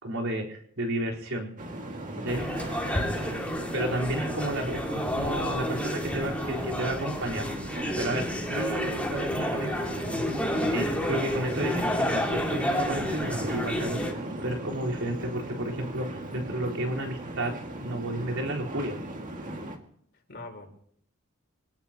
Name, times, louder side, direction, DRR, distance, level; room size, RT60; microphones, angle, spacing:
voice 1, 0.0-1.5 2.2-2.4 3.7-10.2 10.6-19.0, right 1 dB, 85° right, -2 dB, 4.3 m, -32 dB
sound 1, 1.6-19.8, right 1 dB, 40° right, 2.1 m, -37 dB
sound 2, 2.3-14.1, left 1 dB, 5° left, 2.4 m, -31 dB
voice 2, 2.9-3.5 20.3-20.7, left 2 dB, 55° left, 3 dB, 3.6 m, -42 dB
24.5 x 18.0 x 3.0 m, 0.65 s
head